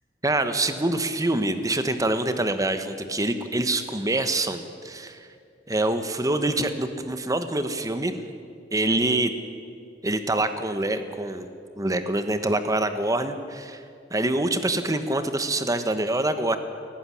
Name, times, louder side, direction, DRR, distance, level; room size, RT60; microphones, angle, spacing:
voice 1, 0.2-5.2 5.7-8.1 8.7-9.3 10.0-11.5 11.8-13.8 14.1-16.6, right 2 dB, 20° right, 9 dB, 1.2 m, -25 dB
18.0 x 15.0 x 10.0 m, 2.3 s
head